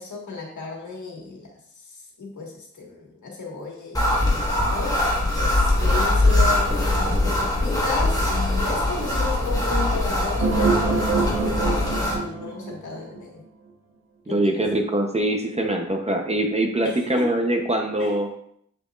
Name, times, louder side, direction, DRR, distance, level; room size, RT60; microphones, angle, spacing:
voice 1, 0.0-1.5 1.8-5.0 5.4-6.7 7.0-13.4 14.3-14.6 16.8-17.3 18.0-18.1, left 3 dB, 80° left, -1 dB, 1.8 m, -34 dB
sound 1, 3.9-12.1, left 1 dB, 10° left, 1.4 m, -22 dB
sound 2, 10.4-13.2, right 4 dB, 65° right, 1.2 m, -25 dB
voice 2, 14.3-18.3, right 1 dB, 20° right, 2 dB, 0.8 m, -23 dB
7.6 x 6.8 x 2.5 m, 0.68 s
wide cardioid pair, 175°, 29 cm